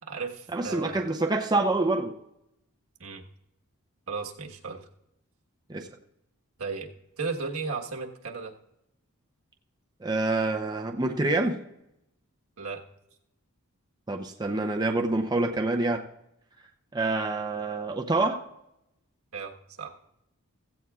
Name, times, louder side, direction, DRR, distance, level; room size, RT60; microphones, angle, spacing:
voice 1, 0.0-1.1 3.0-3.2 4.1-4.9 6.6-6.9 7.2-8.5 12.6-12.8 19.3-20.0, right 4 dB, 75° right, 1 dB, 1.4 m, -35 dB
voice 2, 0.5-2.1 5.7-5.9 10.0-11.6 14.1-16.0 16.9-18.4, right 2 dB, 20° right, 2 dB, 0.6 m, -26 dB
16.0 x 15.5 x 2.4 m, 0.84 s
head